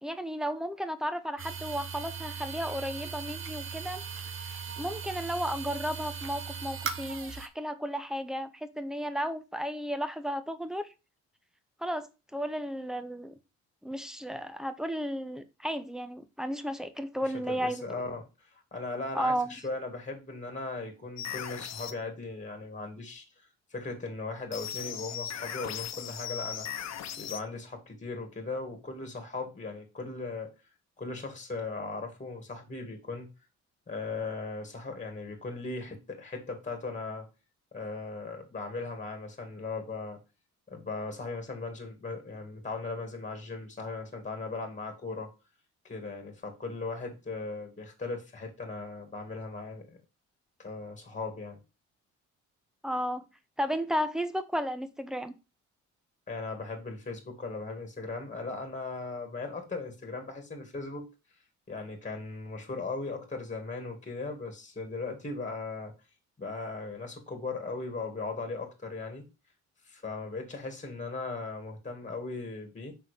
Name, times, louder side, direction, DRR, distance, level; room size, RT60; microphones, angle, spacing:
voice 1, 0.0-4.0 4.4-10.9 11.8-13.3 13.8-18.0 19.1-19.5 52.8-53.2 53.6-55.4, equal, ahead, 0.9 m, -33 dB
sound 1, 1.4-7.5, right 6 dB, 45° right, 1.0 m, -38 dB
voice 2, 17.2-26.7 27.2-30.5 31.0-33.3 33.9-37.3 37.7-40.2 40.7-45.3 45.8-50.0 50.6-51.6 56.3-61.1 61.7-65.9 66.4-69.3 69.9-72.9, left 3 dB, 25° left, 2.1 m, -38 dB
sound 2, 21.2-21.9 24.5-27.4, left 9 dB, 60° left, 0.9 m, -38 dB
5.7 x 3.9 x 5.0 m
cardioid pair, 90°, 30 cm